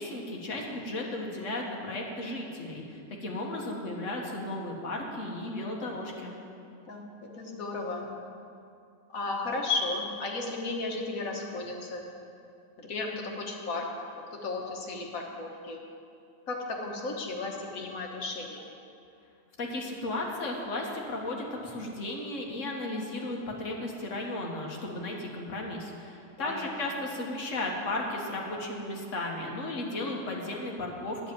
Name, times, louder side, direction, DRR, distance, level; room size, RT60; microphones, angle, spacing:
voice 1, 0.0-6.3 19.6-31.3, left 2 dB, 60° left, -1 dB, 1.8 m, -35 dB
voice 2, 6.9-8.1 9.1-12.1 12.8-13.9 14.3-15.8 16.5-18.7 26.4-26.7, left 3 dB, 80° left, 0 dB, 1.8 m, -34 dB
10.5 x 6.6 x 9.0 m, 2.6 s
omnidirectional pair, 1.4 m